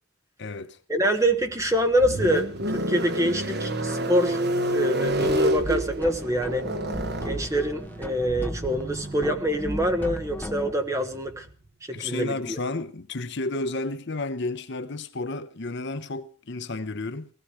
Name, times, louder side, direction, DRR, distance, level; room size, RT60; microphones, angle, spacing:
voice 1, 0.4-0.8 11.9-17.3, left 2 dB, 50° left, 0.8 m, -32 dB
voice 2, 0.9-4.4 4.7-6.7 7.2-11.5 11.9-12.6, equal, 15° right, 1.3 m, -25 dB
sound 1, 1.3-11.5, right 1 dB, 45° right, 1.2 m, -30 dB
sound 2, 5.1-10.7, equal, 10° left, 0.8 m, -35 dB
17.5 x 16.0 x 4.9 m
head